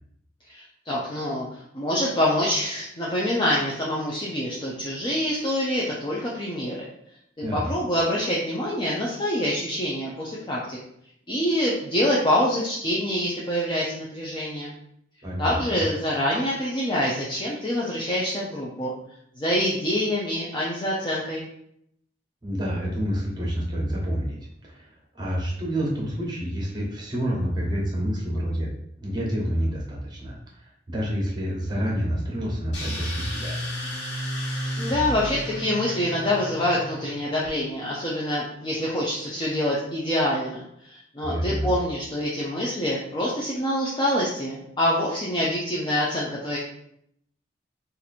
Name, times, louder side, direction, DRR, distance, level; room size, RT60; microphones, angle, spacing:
voice 1, 0.5-1.5 1.7-6.9 7.5-10.8 11.3-14.7 15.4-18.9 19.4-21.4 34.8-46.6, left 1 dB, 25° left, -5 dB, 0.5 m, -26 dB
voice 2, 15.2-15.8 22.4-24.4 24.7-24.9 25.1-28.7 29.0-30.4 30.6-33.6 41.2-41.7, equal, 25° right, -3 dB, 1.1 m, -28 dB
sound 1, 32.7-37.5, equal, 80° left, 1.4 m, -32 dB
2.9 x 2.6 x 4.1 m, 0.72 s
head